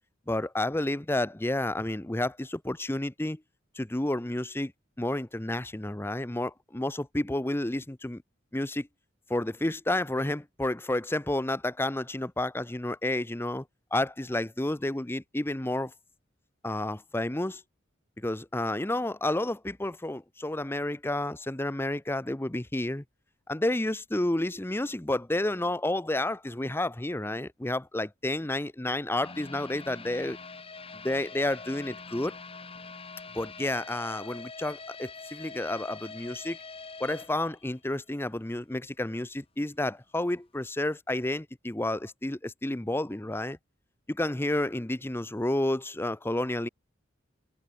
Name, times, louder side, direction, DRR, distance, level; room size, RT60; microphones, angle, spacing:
voice 1, 0.3-3.4 3.8-4.7 5.0-8.2 8.5-8.9 9.3-13.6 13.9-15.9 16.6-17.6 18.2-23.0 23.5-30.4 30.9-32.3 33.3-36.6 37.0-43.6 44.1-46.7, left 1 dB, 10° left, 0.8 m, -30 dB
sound 1, 29.2-38.2 38.5-38.6 39.1-39.2, left 4 dB, 30° left, 3.2 m, -44 dB
head